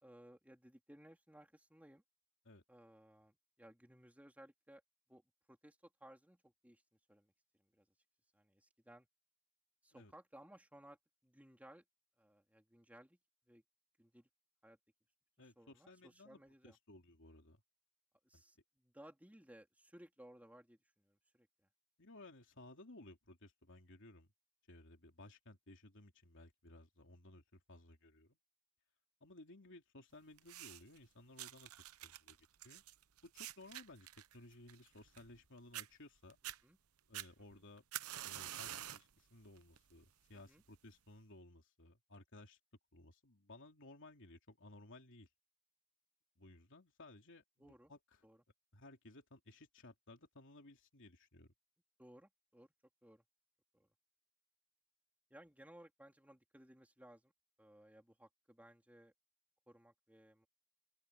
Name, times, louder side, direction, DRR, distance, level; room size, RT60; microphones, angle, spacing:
voice 1, 0.0-2.0 2.7-4.8 5.1-5.2 5.5-6.8 7.1-7.3 7.6-7.9 8.3-9.1 9.8-11.8 12.2-13.2 13.5-13.6 14.0-14.3 14.6-14.8 15.4-16.8 18.2-21.7 36.4-36.8 37.5-37.6 40.3-40.6 47.6-47.9 48.2-48.4 52.0-52.7 53.0-53.2 53.7-53.9 55.3-57.3 57.6-59.1 59.7-60.5, right 1 dB, 5° right, 3.4 m, -61 dB
voice 2, 15.4-17.6 18.3-18.4 22.0-24.3 24.7-28.4 29.2-31.7 32.0-32.8 33.2-36.4 37.1-37.8 38.2-42.6 42.9-45.3 46.4-48.2 48.7-51.5, left 2 dB, 60° left, 3.2 m, -59 dB
sound 1, 30.4-31.0 31.4-35.4 35.7-35.9 36.3-36.6 37.1-39.1 39.6-39.9 40.7-40.8, right 12 dB, 75° right, 0.8 m, -48 dB
open air
head